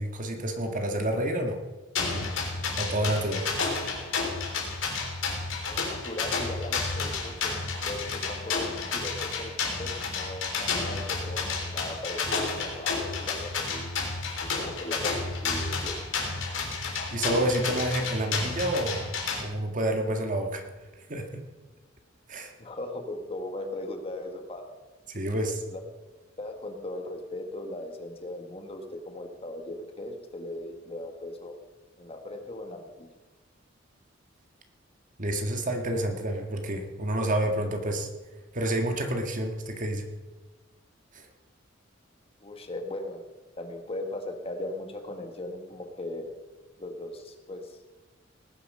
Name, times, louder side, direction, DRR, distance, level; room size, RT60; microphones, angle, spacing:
voice 1, 0.0-1.6 2.0-2.3 2.8-3.5 17.1-19.1 19.4-20.6 21.1-21.4 22.3-22.5 25.1-25.6 35.2-38.1 38.5-40.1 41.1-41.3, right 1 dB, 45° right, 4 dB, 1.9 m, -29 dB
sound 1, 2.0-19.4, left 4 dB, 80° left, 3.6 m, -31 dB
voice 2, 5.7-7.5 7.8-14.1 14.4-15.9 22.6-24.6 25.5-25.8 26.4-31.5 32.0-33.1 42.4-43.2 43.6-46.3 46.8-47.8, left 1 dB, 30° left, 5 dB, 1.6 m, -38 dB
19.0 x 9.9 x 5.5 m, 1.2 s
head